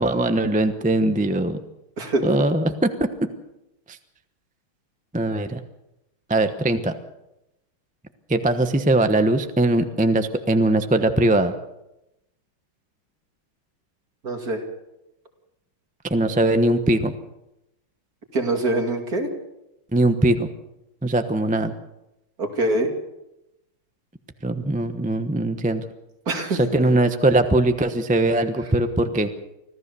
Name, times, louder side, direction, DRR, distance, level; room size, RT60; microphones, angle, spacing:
voice 1, 0.0-1.6 2.2-3.1 3.9-4.0 5.1-5.6 6.3-6.9 8.3-11.5 16.1-17.1 19.9-20.5 21.0-21.7 24.4-25.8 26.6-29.3, right 1 dB, 10° right, 8 dB, 0.4 m, -21 dB
voice 2, 14.2-14.6 18.3-19.3 22.4-22.9 26.3-26.8, right 2 dB, 45° right, 4 dB, 2.9 m, -24 dB
25.5 x 15.5 x 7.0 m, 0.90 s
omnidirectional pair, 2.3 m